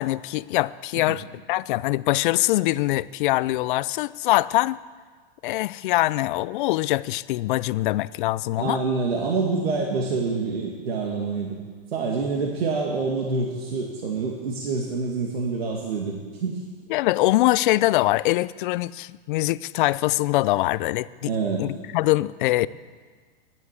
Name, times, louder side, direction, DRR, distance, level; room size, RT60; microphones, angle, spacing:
voice 1, 0.0-4.8 5.4-8.8 16.9-21.3 21.6-22.7, left 17 dB, 55° left, 18 dB, 0.5 m, -23 dB
voice 2, 8.6-11.6 11.9-16.6 21.3-21.7, right 4 dB, 90° right, 0 dB, 2.1 m, -26 dB
12.5 x 10.5 x 8.2 m, 1.5 s
hypercardioid pair, 130°, 30 cm